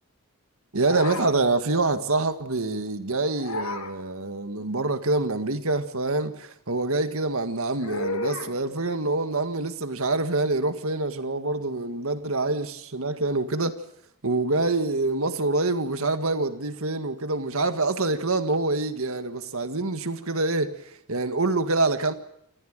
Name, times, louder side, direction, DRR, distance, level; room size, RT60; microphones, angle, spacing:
voice 1, 0.7-13.7 14.2-20.7 21.1-22.1, right 2 dB, 65° right, 1.8 m, -26 dB
sound 1, 0.8-1.3 3.3-3.9 7.8-8.5, left 3 dB, 65° left, 2.5 m, -32 dB
28.0 x 14.0 x 9.1 m
head